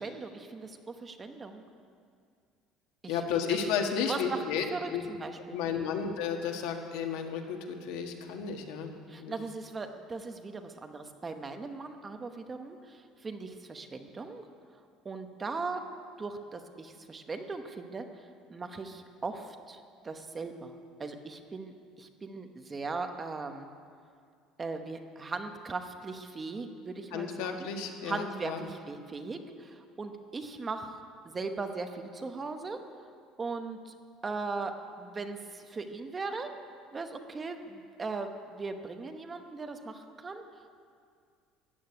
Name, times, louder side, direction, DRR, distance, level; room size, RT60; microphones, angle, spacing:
voice 1, 0.0-1.7 3.0-3.6 4.0-5.6 9.1-14.5 15.0-15.8 16.2-18.1 18.5-20.7 21.0-23.7 24.6-27.7 28.0-32.8 33.4-33.9 34.2-36.5 36.9-40.4, right 3 dB, 20° right, 6 dB, 0.9 m, -39 dB
voice 2, 3.1-4.6 4.9-5.0 5.5-8.9 9.2-9.3 27.1-28.7, left 7 dB, 85° left, 3 dB, 1.7 m, -33 dB
14.5 x 8.7 x 9.6 m, 2.2 s
cardioid pair, 165°, 0 cm